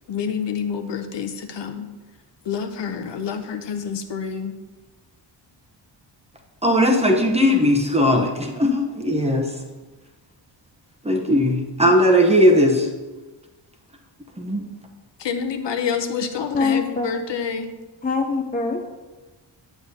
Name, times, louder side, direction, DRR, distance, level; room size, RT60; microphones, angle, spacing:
voice 1, 0.1-1.9 2.4-4.6 15.2-17.7, left 6 dB, 65° left, 7 dB, 0.8 m, -28 dB
voice 2, 6.6-9.5 11.0-12.9 14.4-14.6, equal, 15° right, 2 dB, 0.9 m, -18 dB
voice 3, 16.5-17.1 18.0-18.8, left 4 dB, 20° left, 2 dB, 0.6 m, -23 dB
8.2 x 8.2 x 2.8 m, 1.2 s
wide cardioid pair, 110°, 47 cm